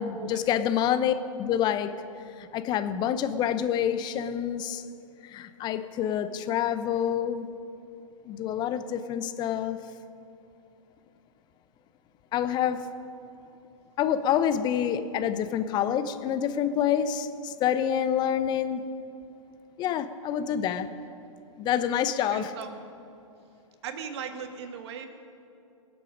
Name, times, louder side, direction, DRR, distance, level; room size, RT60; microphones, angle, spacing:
voice 1, 0.0-1.9 2.4-4.8 5.2-7.5 8.3-9.8 12.3-12.9 14.0-18.8 19.8-20.9 21.6-22.5, left 9 dB, 25° left, 11 dB, 0.8 m, -27 dB
voice 2, 22.3-22.7 23.8-25.1, right 7 dB, 50° right, 5 dB, 1.8 m, -38 dB
24.5 x 8.3 x 5.1 m, 2.6 s
figure-of-eight pair, 115°, 18 cm